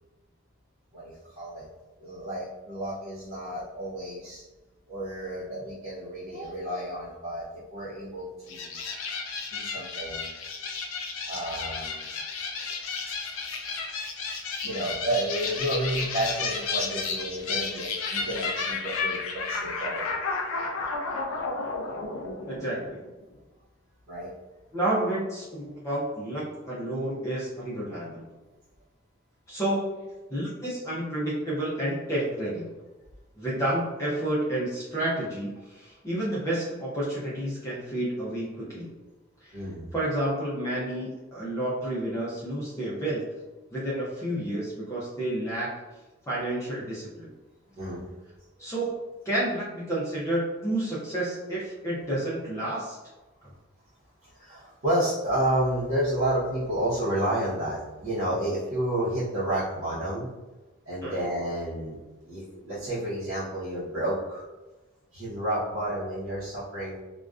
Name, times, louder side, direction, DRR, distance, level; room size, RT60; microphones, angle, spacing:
voice 1, 0.9-1.7 2.0-4.4 4.9-8.9 9.5-10.3 11.2-12.1 13.1-13.4 13.8-13.9 14.6-20.0 24.1-24.3 39.5-39.8 47.7-48.1 54.2-60.3 60.8-62.0 62.2-64.4 65.1-67.0, right 1 dB, 65° right, -10 dB, 0.7 m, -31 dB
sound 1, 8.5-23.1, left 4 dB, 85° left, 0.4 m, -32 dB
voice 2, 22.5-23.0 24.7-28.3 29.5-32.6 33.4-38.9 39.4-39.5 39.9-43.2 43.7-45.7 46.3-47.3 48.6-48.9 49.2-53.0 61.0-61.2, right 1 dB, 15° left, -7 dB, 0.4 m, -30 dB
2.4 x 2.2 x 2.3 m, 1.1 s
head